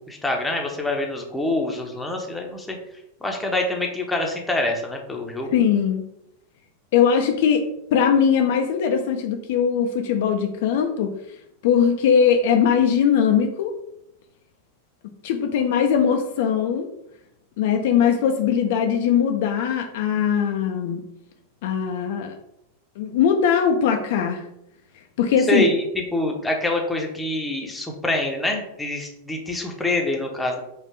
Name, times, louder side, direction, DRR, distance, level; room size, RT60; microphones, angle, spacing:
voice 1, 0.1-2.8 3.2-5.5 25.5-25.8 26.1-30.6, left 1 dB, 5° left, 1 dB, 0.7 m, -25 dB
voice 2, 5.5-6.0 6.9-11.1 11.6-13.7 15.2-16.9 17.6-21.0 21.6-22.3 23.0-24.4 25.2-25.7, left 7 dB, 50° left, 4 dB, 0.4 m, -20 dB
4.2 x 2.4 x 3.2 m, 0.81 s
figure-of-eight pair, 90°, 0 cm